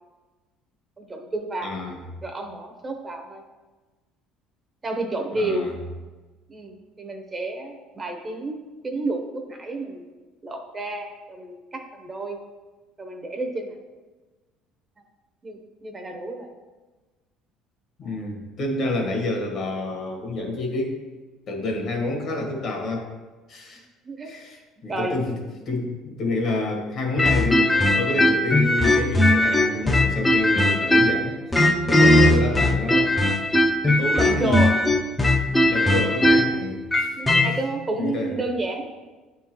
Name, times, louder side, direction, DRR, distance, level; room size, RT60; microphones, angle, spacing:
voice 1, 1.0-1.8 2.2-3.4 4.8-5.7 6.5-8.6 8.8-10.1 10.4-12.4 13.0-13.7 15.4-16.5 18.0-18.2 24.0-24.3 24.9-25.2 31.9-32.2 34.2-34.7 35.6-35.8 37.2-38.9, right 2 dB, 25° right, 4 dB, 0.8 m, -30 dB
voice 2, 1.6-2.0 5.4-5.7 18.0-21.0 21.5-23.1 23.5-23.9 24.2-25.4 25.7-33.1 33.8-34.6 35.4-37.2 38.0-38.3, left 2 dB, 55° left, 2 dB, 1.4 m, -29 dB
sound 1, 27.2-31.2 31.5-37.5, left 1 dB, 10° left, 0.6 m, -19 dB
9.2 x 3.7 x 3.0 m, 1.2 s
cardioid pair, 110°, 0 cm